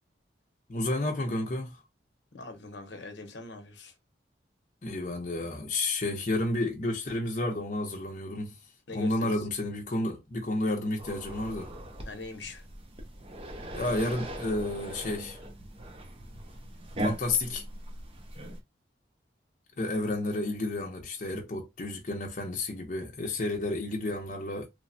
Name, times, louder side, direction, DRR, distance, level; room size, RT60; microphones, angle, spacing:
voice 1, 0.7-1.8 4.8-8.5 8.9-11.7 13.7-15.4 17.0-17.6 19.8-24.7, left 2 dB, 40° left, 0.6 m, -31 dB
voice 2, 2.3-3.9 8.9-9.5 12.0-12.6, left 3 dB, 75° left, 0.7 m, -42 dB
sound 1, 11.0-18.6, right 1 dB, 30° right, 0.5 m, -39 dB
3.2 x 2.0 x 2.6 m
head